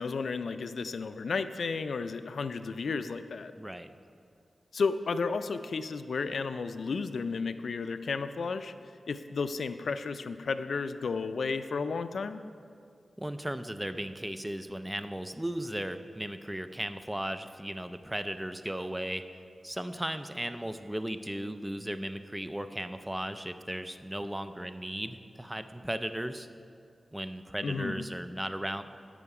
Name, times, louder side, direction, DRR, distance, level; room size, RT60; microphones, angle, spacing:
voice 1, 0.0-3.5 4.7-8.7 9.1-12.4 27.6-28.1, left 4 dB, 80° left, 10 dB, 0.4 m, -33 dB
voice 2, 3.6-3.9 13.2-19.2 19.6-26.5 27.1-28.8, right 1 dB, 10° right, 10 dB, 0.4 m, -36 dB
11.0 x 6.9 x 4.8 m, 2.3 s
wide cardioid pair, 100°, 0 cm